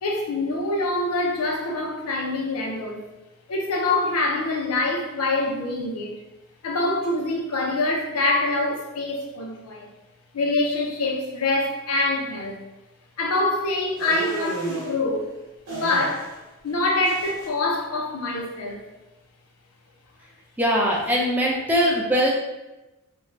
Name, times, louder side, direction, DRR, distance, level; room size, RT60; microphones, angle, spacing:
voice 1, 0.0-3.0 3.5-6.2 6.6-9.9 10.3-12.6 13.2-15.3 15.7-16.3 16.6-18.8, left 2 dB, 70° left, 0.5 m, -25 dB
sound 1, 14.0-14.9 15.7-16.4 16.7-17.5, right 2 dB, 70° right, 1.1 m, -33 dB
voice 2, 20.6-22.3, equal, 10° right, 0.4 m, -21 dB
2.5 x 2.1 x 3.1 m
head